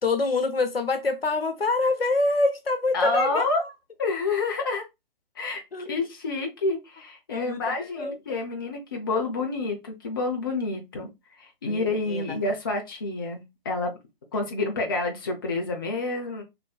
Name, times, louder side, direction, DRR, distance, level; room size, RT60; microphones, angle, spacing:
voice 1, 0.0-3.7 5.7-6.0 7.3-7.6 8.0-8.2 11.7-12.2, left 3 dB, 85° left, 0.8 m, -26 dB
voice 2, 2.9-3.6 4.0-4.8 5.4-11.1 11.4-13.9 14.3-16.4, left 3 dB, 25° left, 0.4 m, -28 dB
3.0 x 2.6 x 2.2 m
figure-of-eight pair, 140°, 29 cm